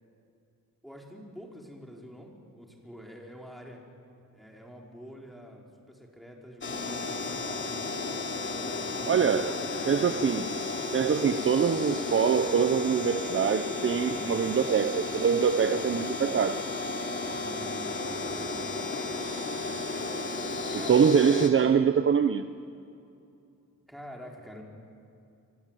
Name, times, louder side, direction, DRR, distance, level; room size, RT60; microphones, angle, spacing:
voice 1, 0.8-3.8 4.3-8.0 8.5-9.5 14.1-14.5 15.7-16.1 17.3-18.7 19.4-19.9 20.7-21.7 23.9-24.6, equal, ahead, 5.1 m, -47 dB
sound 1, 6.6-21.5, left 3 dB, 35° left, 3.0 m, -33 dB
voice 2, 9.1-10.5 10.9-16.7 20.7-22.4, right 7 dB, 40° right, 0.8 m, -24 dB
26.5 x 23.5 x 9.3 m
cardioid pair, 115°, 33 cm